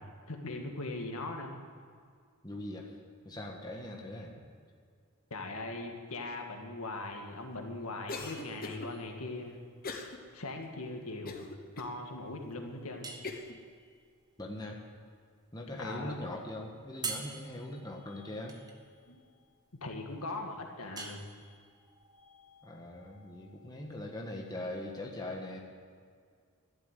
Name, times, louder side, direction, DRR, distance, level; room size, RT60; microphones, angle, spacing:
voice 1, 0.0-1.6 5.3-9.6 10.3-11.5 11.8-13.1 15.8-16.1 19.1-19.3 19.8-21.2, left 2 dB, 75° left, 3 dB, 1.8 m, -40 dB
voice 2, 2.4-2.9 3.2-4.3 14.4-14.8 15.5-18.6 22.6-25.6, left 1 dB, 20° left, 0 dB, 1.5 m, -41 dB
Cough, 8.1-8.9 9.8-10.2 10.6-10.7 11.3-11.9 12.5-12.6 13.2-13.6, left 3 dB, 40° left, 1.2 m, -41 dB
sound 1, 8.2-25.0, right 4 dB, 15° right, 1.2 m, -48 dB
12.0 x 12.0 x 8.2 m, 2.1 s
head